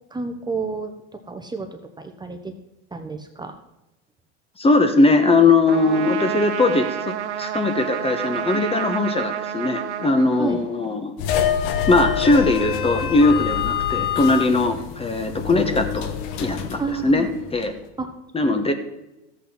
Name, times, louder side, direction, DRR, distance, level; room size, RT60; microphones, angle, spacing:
voice 1, 0.1-1.7 2.0-2.5 2.9-3.5 8.5-8.6 10.4-10.6 16.8-17.3 18.0-18.1 18.4-18.7, right 4 dB, 10° right, 5 dB, 1.0 m, -30 dB
voice 2, 4.6-11.1 11.9-16.1 16.4-17.7 18.3-18.7, left 3 dB, 15° left, 7 dB, 1.1 m, -20 dB
Trumpet, 5.7-10.9, right 10 dB, 85° right, 0.9 m, -29 dB
sound 1, 11.2-17.7, left 9 dB, 65° left, 1.3 m, -26 dB
13.5 x 8.3 x 4.3 m, 0.94 s
hypercardioid pair, 100°, 34 cm